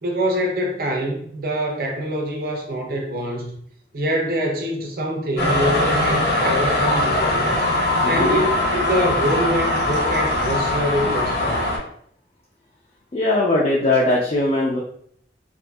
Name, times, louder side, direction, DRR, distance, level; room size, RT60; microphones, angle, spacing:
voice 1, 0.0-3.5 3.9-7.6 8.0-11.7, equal, 50° right, 1 dB, 0.5 m, -24 dB
sound 1, 5.4-11.8, left 1 dB, 65° left, 0.7 m, -21 dB
voice 2, 8.0-8.4 13.1-14.8, left 2 dB, 35° left, -4 dB, 0.3 m, -20 dB
2.6 x 2.3 x 2.2 m, 0.64 s
head